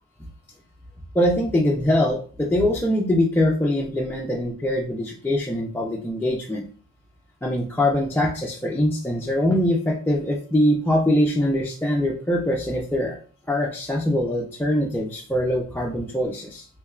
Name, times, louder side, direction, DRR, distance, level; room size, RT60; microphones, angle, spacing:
voice 1, 1.1-6.6 7.4-13.2 13.5-16.7, left 1 dB, 5° left, -2 dB, 0.4 m, -23 dB
3.3 x 3.1 x 2.3 m, 0.42 s
cardioid pair, 120°, 33 cm